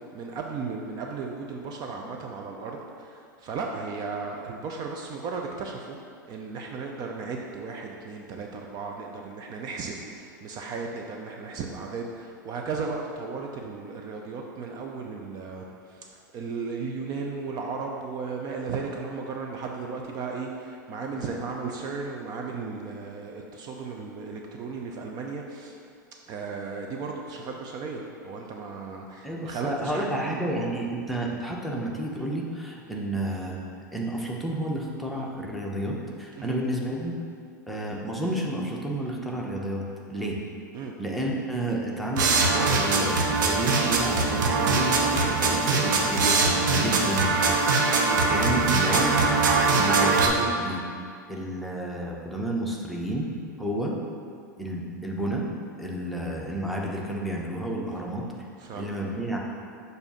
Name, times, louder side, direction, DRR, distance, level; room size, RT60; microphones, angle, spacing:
voice 1, 0.1-6.0 6.2-16.1 16.3-25.8 26.3-30.4 36.4-36.6 40.7-40.9 46.8-47.1 47.5-47.7 58.6-58.9, right 4 dB, 40° right, 1 dB, 0.6 m, -35 dB
voice 2, 29.2-33.6 33.9-37.1 37.7-39.8 40.1-40.4 41.0-47.3 48.0-49.3 49.7-50.8 51.3-53.3 53.6-54.0 54.6-55.5 55.8-58.2 58.7-59.4, right 1 dB, ahead, -3 dB, 0.9 m, -31 dB
sound 1, 42.2-50.3, right 3 dB, 70° right, 0.8 m, -22 dB
6.8 x 2.7 x 5.6 m, 2.3 s
hypercardioid pair, 100°, 11 cm